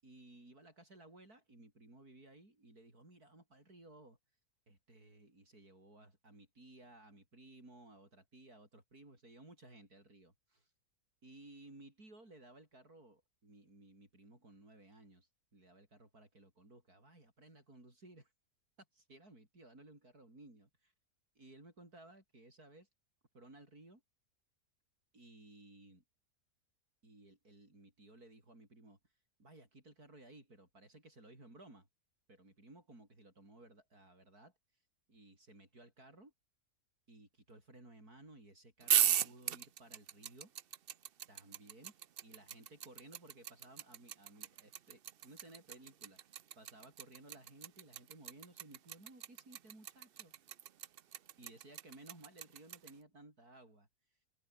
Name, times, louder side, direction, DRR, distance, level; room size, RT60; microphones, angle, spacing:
voice 1, 0.0-4.2 4.7-10.7 11.2-18.3 18.9-20.9 21.4-22.9 23.3-24.0 25.1-26.0 27.0-29.0 29.4-31.9 32.3-34.5 35.1-36.3 37.1-40.5 41.3-41.9 42.2-50.3 51.4-53.9, right 2 dB, 75° right, 7.9 m, -58 dB
sound 1, 38.8-52.9, right 10 dB, 55° right, 0.6 m, -36 dB
omnidirectional pair, 1.6 m